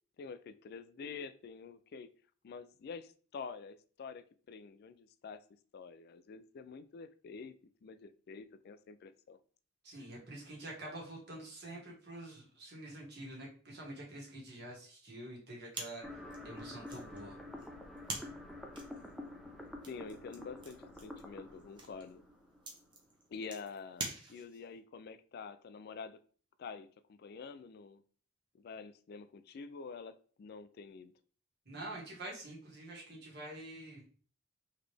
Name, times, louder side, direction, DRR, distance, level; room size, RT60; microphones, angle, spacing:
voice 1, 0.2-2.1 2.4-5.4 5.7-7.5 7.8-9.4 19.9-22.2 23.3-26.2 26.6-28.0 28.5-31.1, left 5 dB, 50° left, 12 dB, 0.3 m, -47 dB
voice 2, 9.8-16.1 16.4-17.4 31.7-34.0, right 1 dB, 55° right, -2 dB, 1.6 m, -47 dB
sound 1, 15.7-24.8, right 3 dB, 25° right, 0.8 m, -47 dB
sound 2, 16.0-23.1, left 1 dB, ahead, 0.5 m, -49 dB
4.0 x 3.1 x 3.3 m, 0.42 s
head